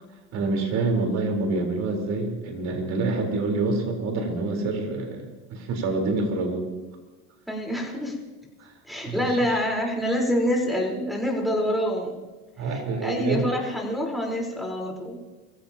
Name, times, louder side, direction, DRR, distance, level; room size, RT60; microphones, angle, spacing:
voice 1, 0.3-6.7 8.6-8.7 9.0-9.3 12.6-13.5, right 3 dB, 55° right, 2 dB, 4.2 m, -27 dB
voice 2, 7.5-8.2 8.8-12.1 12.6-15.2, equal, ahead, 0 dB, 4.2 m, -26 dB
22.5 x 15.5 x 2.9 m, 1.2 s
supercardioid pair, 115°, 32 cm